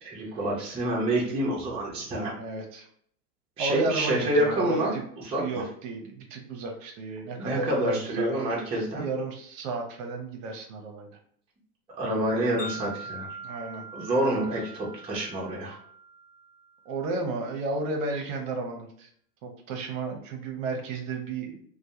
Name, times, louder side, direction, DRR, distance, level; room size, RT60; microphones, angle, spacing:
voice 1, 0.0-2.4 3.6-4.9 5.2-5.6 7.4-9.0 12.0-13.3 13.9-15.8, right 1 dB, 10° right, -4 dB, 0.5 m, -27 dB
voice 2, 2.4-2.9 3.6-5.0 5.4-8.3 9.0-11.1 12.3-12.8 13.4-13.9 14.5-14.7 16.9-19.1 19.4-21.6, right 3 dB, 55° right, 3 dB, 0.7 m, -33 dB
Wind chime, 12.6-16.9, right 3 dB, 40° left, 0.7 m, -42 dB
2.2 x 2.1 x 2.7 m, 0.63 s
hypercardioid pair, 95°, 49 cm